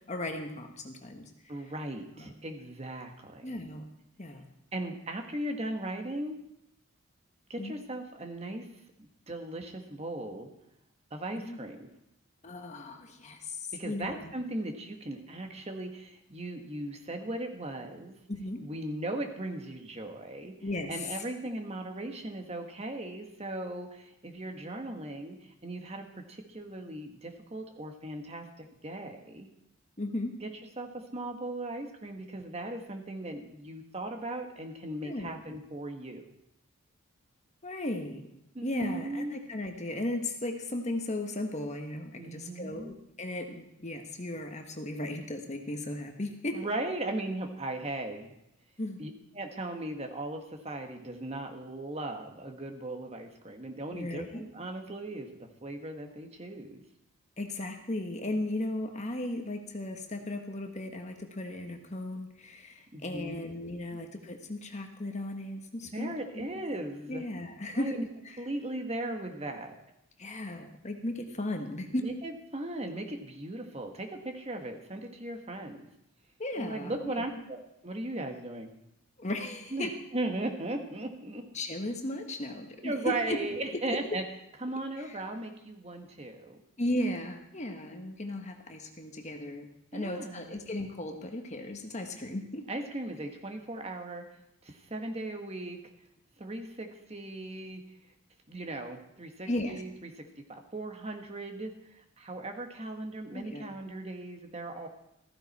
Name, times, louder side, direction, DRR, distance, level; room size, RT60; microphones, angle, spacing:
voice 1, 0.1-1.3 2.2-2.3 3.4-3.9 4.2-4.5 7.6-7.7 11.4-11.6 12.4-14.6 18.3-18.6 20.6-21.2 30.0-30.3 35.0-35.6 37.6-38.2 38.6-46.6 48.8-49.0 53.9-54.4 57.4-66.5 67.1-68.0 68.2-68.4 70.2-72.0 76.4-77.2 79.2-79.9 81.5-83.4 83.9-84.0 85.0-85.2 86.8-92.6 99.4-99.8 103.3-103.7, left 1 dB, 35° left, 4 dB, 1.4 m, -36 dB
voice 2, 1.5-3.6 4.7-6.4 7.5-8.7 9.3-10.5 11.1-11.8 13.7-18.1 18.6-20.5 20.9-29.5 30.4-30.5 30.8-36.2 38.5-39.4 42.2-43.0 46.5-48.3 49.0-56.8 62.9-63.5 65.9-67.2 67.7-68.0 68.4-69.7 72.0-75.9 76.6-78.7 79.7-81.4 82.8-84.2 84.6-86.6 89.9-90.6 92.7-94.2 94.6-95.8 96.4-97.8 98.5-104.9, right 1 dB, 30° right, 4 dB, 1.4 m, -38 dB
15.0 x 14.5 x 4.3 m, 0.81 s
head